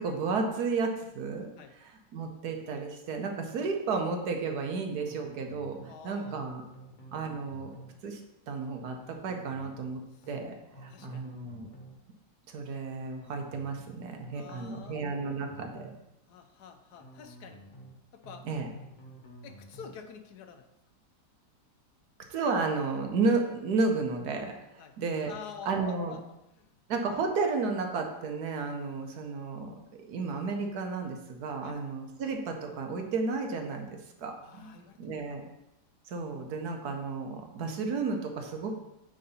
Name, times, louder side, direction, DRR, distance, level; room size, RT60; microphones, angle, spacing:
voice 1, 0.0-1.5 1.8-6.6 7.1-7.7 8.0-8.2 8.5-10.0 10.3-11.7 12.5-15.9 18.5-18.7 22.3-25.3 25.7-26.1 26.9-29.8 30.1-35.4 36.1-38.8, right 4 dB, 70° right, 3 dB, 1.3 m, -32 dB
sound 1, 5.0-5.9 6.2-6.5 6.7-8.0 9.0-9.9 10.2-10.5 10.7-12.0 13.0-13.9 14.2-14.5 14.7-16.0 17.0-17.9 18.2-18.5 18.7-20.0, right 1 dB, 30° left, 1.3 m, -50 dB
voice 2, 5.9-6.6 10.2-10.3 10.9-11.3 14.3-15.0 16.3-17.6 18.1-18.5 19.4-20.7 24.8-24.9 25.3-26.7 31.6-31.8 34.4-35.4, left 7 dB, 75° left, 7 dB, 1.2 m, -48 dB
8.9 x 3.9 x 4.1 m, 0.91 s
omnidirectional pair, 1.8 m